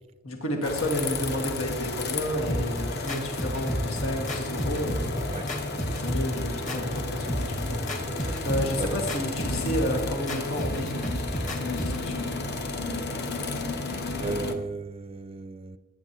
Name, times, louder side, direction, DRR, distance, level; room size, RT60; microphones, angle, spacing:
voice 1, 0.2-5.3 6.0-7.8 8.2-10.9 11.6-12.3, left 1 dB, 90° left, 1.8 m, -31 dB
sound 1, 0.6-14.5, left 2 dB, 50° left, 1.1 m, -32 dB
sound 2, 2.5-12.1, equal, 35° left, 1.6 m, -32 dB
voice 2, 8.2-8.9 14.2-15.8, right 3 dB, 30° right, 0.4 m, -35 dB
18.5 x 9.8 x 3.0 m
head